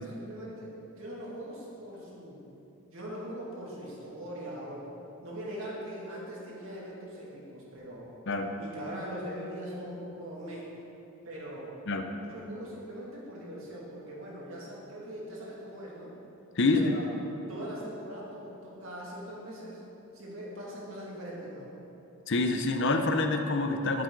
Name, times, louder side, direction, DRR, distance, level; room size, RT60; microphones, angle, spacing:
voice 1, 0.0-2.4 2.9-4.9 5.2-8.1 8.6-10.7 11.2-11.8 12.2-16.1 16.6-17.1 17.5-19.8 20.1-21.7, equal, 65° right, -5 dB, 2.5 m, -41 dB
voice 2, 16.6-16.9 22.3-24.0, left 2 dB, 55° left, 5 dB, 0.7 m, -27 dB
13.5 x 7.6 x 4.0 m, 2.9 s
head